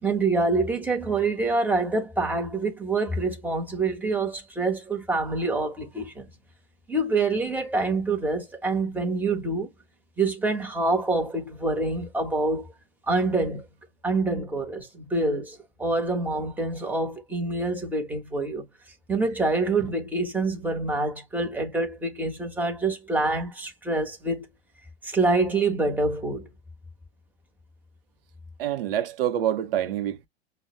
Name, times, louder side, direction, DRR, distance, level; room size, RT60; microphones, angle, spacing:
voice 1, 0.0-6.3 6.9-9.7 10.2-12.7 13.1-13.6 14.0-18.6 19.1-24.5 25.0-26.5, right 3 dB, 5° right, 1.1 m, -26 dB
voice 2, 28.6-30.3, right 11 dB, 60° right, 0.8 m, -27 dB
6.1 x 2.2 x 3.0 m
figure-of-eight pair, 100°, 32 cm